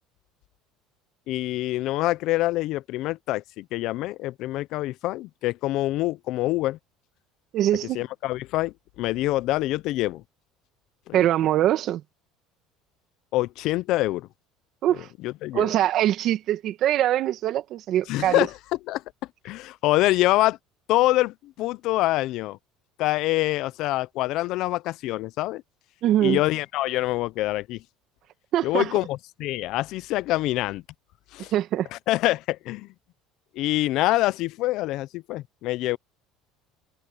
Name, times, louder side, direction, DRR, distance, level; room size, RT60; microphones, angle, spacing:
voice 1, 1.3-6.8 7.9-10.2 11.1-11.2 13.3-14.3 15.2-15.7 18.1-18.6 18.9-19.0 19.4-20.6 20.9-22.6 23.0-25.6 26.2-27.8 28.6-30.8 31.3-31.5 31.9-32.9 33.5-36.0, left 17 dB, 65° left, 0.6 m, -25 dB
voice 2, 7.5-8.0 11.1-12.0 14.8-15.1 15.5-18.5 26.0-26.4 28.5-28.9 31.5-31.9, right 12 dB, 55° right, 1.9 m, -23 dB
supercardioid pair, 115°, 0 cm